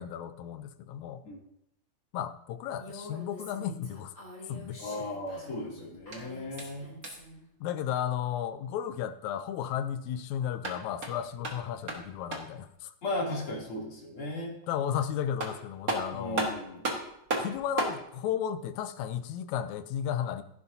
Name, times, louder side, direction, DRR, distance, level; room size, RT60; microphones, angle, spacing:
voice 1, 0.0-1.2 2.1-4.1 4.5-4.8 7.6-12.9 14.7-16.5 17.4-20.4, left 9 dB, 80° left, 10 dB, 2.1 m, -34 dB
Female speech woman speaking, 2.8-7.4, left 1 dB, 25° left, 5.0 m, -47 dB
voice 2, 4.8-6.9 13.0-14.6 16.1-16.8, left 1 dB, 45° left, -3 dB, 3.9 m, -36 dB
sound 1, 6.0-7.4 10.4-12.6 14.9-15.0 15.4-18.0, right 2 dB, 35° right, 1.9 m, -35 dB
16.0 x 11.0 x 2.8 m, 0.79 s
omnidirectional pair, 3.3 m